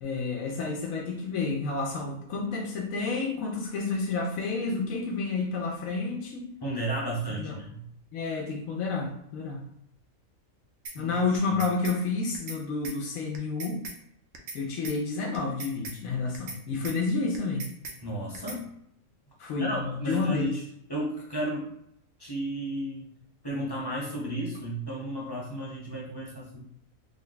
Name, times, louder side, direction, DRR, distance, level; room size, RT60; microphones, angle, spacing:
voice 1, 0.0-6.5 7.4-7.6 8.1-9.6 10.9-13.8 14.5-17.7 19.4-20.5, left 4 dB, 80° left, 0 dB, 1.0 m, -30 dB
voice 2, 6.6-7.8 11.0-11.2 18.0-18.7 19.4-21.7 22.2-23.1 23.4-26.6, right 1 dB, 25° left, -4 dB, 0.7 m, -33 dB
sound 1, 10.9-11.0 11.3-12.0 12.3-12.6 12.8-13.0 13.3-14.0 14.3-14.6 14.8-15.0 15.3-16.0 16.3-16.6 16.8-17.0 17.3-18.0 18.3-18.6, right 3 dB, 65° right, 0.9 m, -39 dB
3.3 x 2.1 x 3.8 m, 0.75 s
omnidirectional pair, 1.4 m